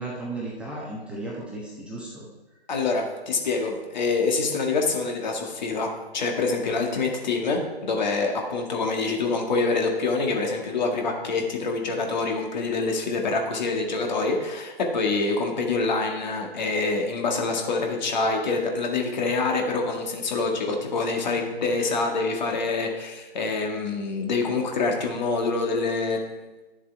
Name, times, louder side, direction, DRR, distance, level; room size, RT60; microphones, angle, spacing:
voice 1, 0.0-2.3, right 2 dB, 5° right, -5 dB, 1.1 m, -35 dB
voice 2, 2.7-26.6, left 3 dB, 45° left, 2 dB, 1.8 m, -26 dB
11.0 x 7.3 x 4.5 m, 1.2 s
figure-of-eight pair, 135°, 31 cm